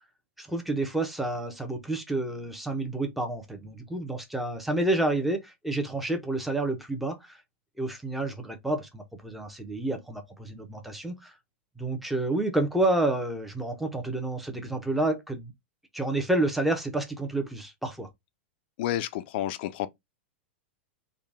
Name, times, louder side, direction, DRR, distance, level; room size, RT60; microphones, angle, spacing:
voice 1, 0.4-7.4 7.8-11.3 11.8-15.5 15.9-18.1, right 2 dB, ahead, 0.8 m, -29 dB
voice 2, 18.8-19.9, left 12 dB, 55° left, 0.5 m, -30 dB
3.8 x 2.4 x 3.5 m
hypercardioid pair, 130°, 6 cm